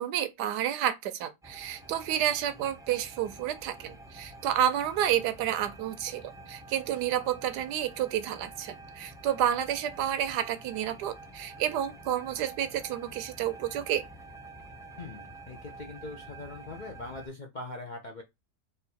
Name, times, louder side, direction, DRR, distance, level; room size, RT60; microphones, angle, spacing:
voice 1, 0.0-14.0, right 10 dB, 80° right, 1.2 m, -30 dB
sound 1, 1.4-17.3, right 2 dB, 5° right, 0.3 m, -48 dB
voice 2, 15.0-18.2, left 2 dB, 60° left, 0.5 m, -42 dB
3.8 x 2.6 x 4.2 m
omnidirectional pair, 1.8 m